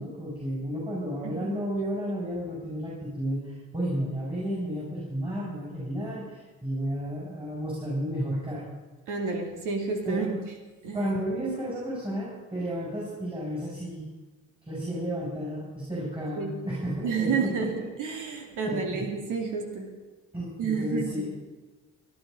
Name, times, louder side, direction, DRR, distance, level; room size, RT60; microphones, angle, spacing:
voice 1, 0.0-8.7 10.0-10.4 10.9-14.1 14.6-17.7 18.6-19.1 20.3-21.3, equal, 15° right, -5 dB, 6.4 m, -32 dB
voice 2, 9.1-10.4 10.8-11.0 16.4-16.5 17.0-19.9 20.6-21.3, right 5 dB, 90° right, 3 dB, 2.7 m, -30 dB
17.5 x 11.0 x 5.3 m, 1.2 s
cardioid pair, 90°, 30 cm